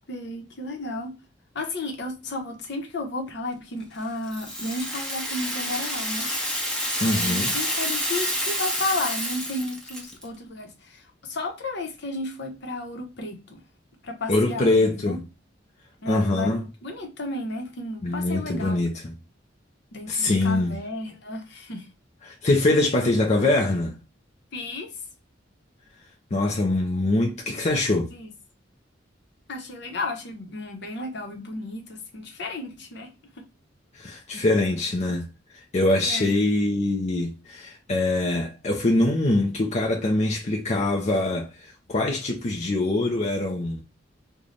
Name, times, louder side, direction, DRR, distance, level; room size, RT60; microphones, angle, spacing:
voice 1, 0.1-1.2 1.5-6.3 7.0-13.6 14.0-15.2 16.0-18.8 19.9-21.9 24.5-24.9 28.1-28.3 29.5-33.4 36.0-36.3, left 2 dB, 65° left, 0.9 m, -33 dB
Rattle (instrument), 4.3-10.3, equal, 5° left, 0.8 m, -28 dB
voice 2, 7.0-7.5 14.3-15.2 16.1-16.7 18.0-19.1 20.1-20.8 22.2-23.9 26.3-28.1 33.9-35.3 35.7-43.8, left 2 dB, 40° left, 0.6 m, -23 dB
3.2 x 2.3 x 3.9 m
head